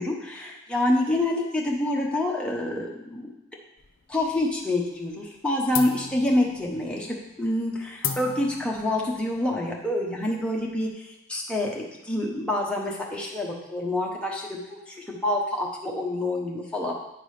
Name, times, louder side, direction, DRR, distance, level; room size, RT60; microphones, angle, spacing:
voice 1, 0.0-3.3 4.1-16.9, left 1 dB, 5° left, -2 dB, 1.0 m, -27 dB
sound 1, 3.8-4.7 5.0-5.4 5.7-10.9, left 7 dB, 60° left, 0.7 m, -37 dB
9.1 x 3.8 x 5.0 m, 0.91 s
head